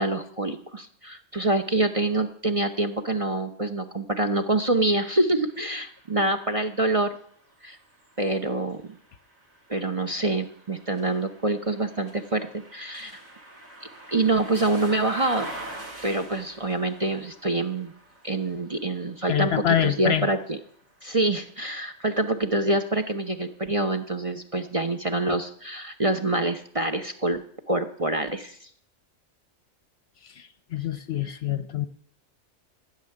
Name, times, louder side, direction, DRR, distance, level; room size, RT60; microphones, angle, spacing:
voice 1, 0.0-7.2 7.6-7.8 8.2-9.0 9.7-13.2 14.1-15.5 16.0-17.9 18.2-20.6 21.0-27.4 27.7-28.7, right 2 dB, 30° right, 7 dB, 0.7 m, -26 dB
sound 1, 5.5-21.4 22.0-23.2, right 2 dB, 85° right, 5.1 m, -45 dB
voice 2, 19.3-20.3 30.2-31.9, left 10 dB, 55° left, 13 dB, 0.9 m, -26 dB
14.5 x 6.3 x 9.9 m, 0.62 s
omnidirectional pair, 1.4 m